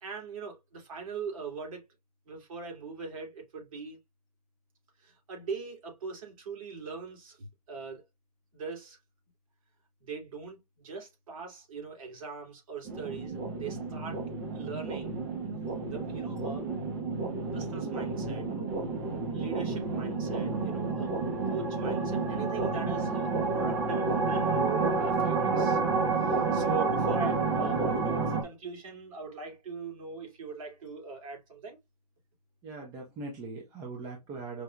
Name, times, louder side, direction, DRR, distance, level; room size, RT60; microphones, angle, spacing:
voice 1, 0.0-1.8 2.3-4.0 5.0-8.0 8.5-9.0 10.0-14.2 14.5-15.2 15.9-16.7 17.5-18.5 19.3-21.1 21.5-25.8 26.2-31.8, right 5 dB, 55° right, 2.4 m, -41 dB
sound 1, 12.9-28.4, right 4 dB, 40° right, 1.2 m, -30 dB
voice 2, 32.6-34.6, right 3 dB, 20° right, 0.9 m, -40 dB
5.2 x 2.7 x 2.3 m
hypercardioid pair, 145°, 20 cm